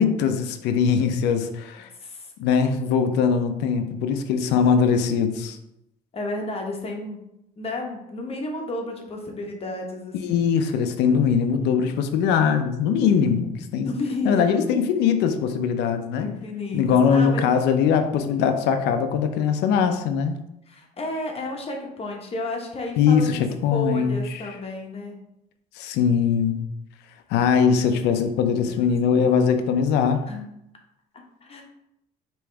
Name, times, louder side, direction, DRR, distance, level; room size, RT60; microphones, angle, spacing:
voice 1, 0.0-1.9 2.4-5.6 10.1-13.9 14.2-16.3 16.7-20.4 23.0-24.2 25.8-26.6 27.3-30.2, left 6 dB, 90° left, 7 dB, 0.5 m, -21 dB
voice 2, 2.0-2.3 6.1-7.3 7.6-10.5 13.8-14.6 16.2-17.5 20.7-23.4 23.7-25.2 28.7-29.3 30.3-30.5 31.4-31.6, left 2 dB, 35° left, 1 dB, 1.0 m, -32 dB
4.8 x 3.0 x 3.4 m, 0.83 s
cardioid pair, 110°, 17 cm